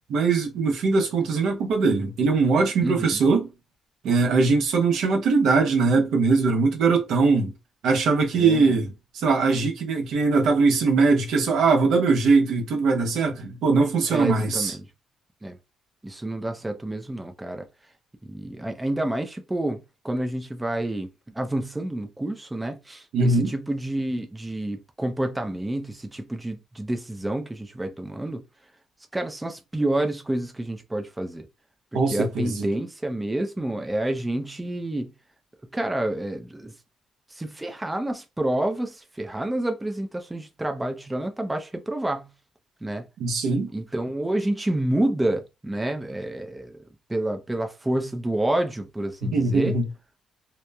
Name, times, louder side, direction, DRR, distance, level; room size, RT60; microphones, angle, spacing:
voice 1, 0.1-3.5 4.0-7.5 7.8-14.7 23.1-23.5 31.9-32.7 43.2-43.7 49.2-49.8, right 4 dB, 80° right, 0.8 m, -21 dB
voice 2, 2.8-3.2 8.3-8.7 14.1-14.9 15.4-15.6 16.0-17.7 18.2-28.4 29.1-31.5 31.9-35.1 35.7-36.7 37.3-42.3 42.8-43.1 43.7-46.8 47.1-49.7, right 1 dB, 10° right, 0.5 m, -29 dB
2.9 x 2.1 x 2.3 m
cardioid pair, 90°, 0 cm